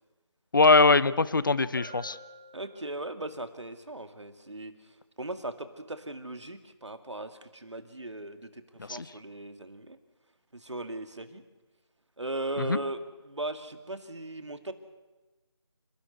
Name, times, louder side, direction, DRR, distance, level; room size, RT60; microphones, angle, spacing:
voice 1, 0.5-2.2 8.8-9.1 12.6-12.8, left 3 dB, 45° left, 18 dB, 0.8 m, -22 dB
Bell, 1.8-3.4, equal, 25° left, 5.3 m, -48 dB
voice 2, 2.5-4.7 5.2-10.0 10.5-11.4 12.2-13.0 13.2-14.7, right 2 dB, 75° right, 9 dB, 2.3 m, -38 dB
28.0 x 13.0 x 9.6 m, 1.2 s
figure-of-eight pair, 165°, 15 cm